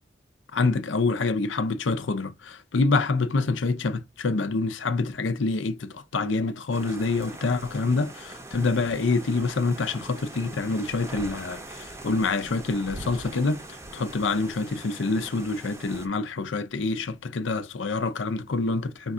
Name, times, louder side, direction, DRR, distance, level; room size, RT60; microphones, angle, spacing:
voice 1, 0.5-13.6 13.9-19.1, left 3 dB, 80° left, 0.6 m, -26 dB
sound 1, 6.7-16.1, right 2 dB, 15° right, 0.6 m, -42 dB
5.1 x 2.4 x 3.7 m
head